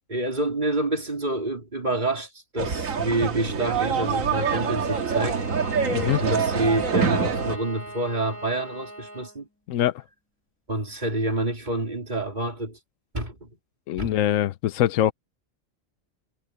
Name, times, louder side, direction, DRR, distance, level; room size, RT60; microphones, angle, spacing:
voice 1, 0.1-5.4 6.2-9.5 10.7-12.8 13.1-13.5 14.0-14.1, right 2 dB, 35° right, 3.6 m, -28 dB
sound 1, 2.6-7.6, right 5 dB, 90° right, 1.9 m, -25 dB
Bowed string instrument, 4.4-9.4, right 1 dB, 10° left, 2.2 m, -40 dB
voice 2, 13.9-15.1, left 12 dB, 80° left, 1.0 m, -23 dB
omnidirectional pair, 1.4 m